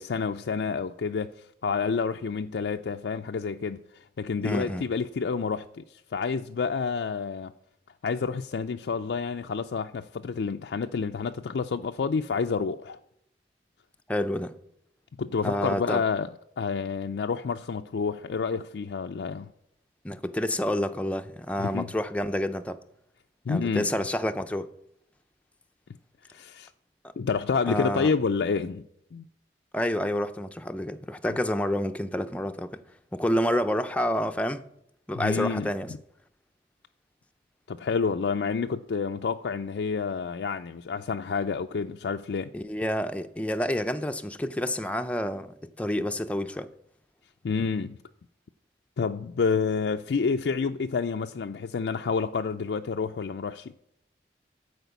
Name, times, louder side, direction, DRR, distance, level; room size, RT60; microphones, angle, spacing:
voice 1, 0.0-7.5 8.0-13.0 15.2-16.3 16.6-19.5 21.6-21.9 23.5-23.9 26.3-26.7 27.2-29.3 35.1-36.0 37.7-42.5 47.4-48.0 49.0-53.7, left 5 dB, 75° left, 0.4 m, -29 dB
voice 2, 4.4-4.9 14.1-14.6 15.4-16.0 20.0-22.8 23.5-24.7 27.0-27.1 27.7-28.1 29.7-32.8 33.1-34.6 35.1-35.9 42.5-46.7, left 1 dB, 5° left, 0.5 m, -29 dB
13.0 x 5.1 x 8.1 m
head